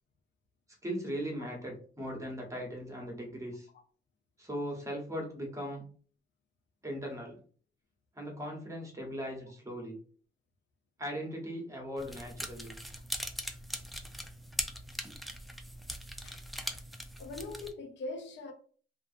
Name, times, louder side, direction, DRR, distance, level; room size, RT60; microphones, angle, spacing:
voice 1, 0.8-3.7 4.4-5.9 6.8-7.4 8.2-10.0 11.0-12.7, equal, 15° right, 1.0 m, -39 dB
sound 1, 12.0-17.7, equal, ahead, 0.3 m, -40 dB
voice 2, 17.2-18.5, left 2 dB, 65° left, 0.7 m, -41 dB
2.5 x 2.4 x 2.5 m
cardioid pair, 90°, 20 cm